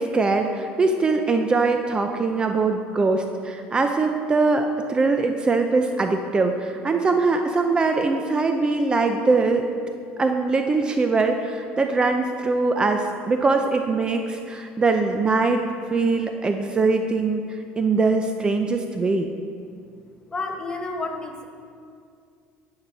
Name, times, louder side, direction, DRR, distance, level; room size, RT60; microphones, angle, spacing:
voice 1, 0.0-9.7 10.2-15.6 15.9-19.3, right 3 dB, 20° right, 5 dB, 0.6 m, -22 dB
voice 2, 20.3-21.4, left 3 dB, 20° left, 3 dB, 1.1 m, -30 dB
11.0 x 7.8 x 5.5 m, 2.3 s
cardioid pair, 135°, 4 cm